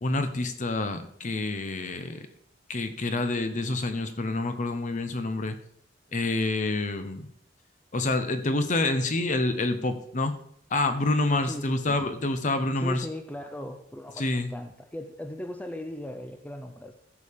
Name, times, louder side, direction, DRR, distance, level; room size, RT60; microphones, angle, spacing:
voice 1, 0.0-2.2 2.7-5.6 6.1-7.3 7.9-10.3 10.7-13.1 14.2-14.5, left 2 dB, 45° left, 8 dB, 0.9 m, -27 dB
voice 2, 11.4-12.0 12.8-16.9, left 1 dB, 10° left, 6 dB, 0.5 m, -38 dB
15.5 x 6.7 x 3.6 m, 0.72 s
head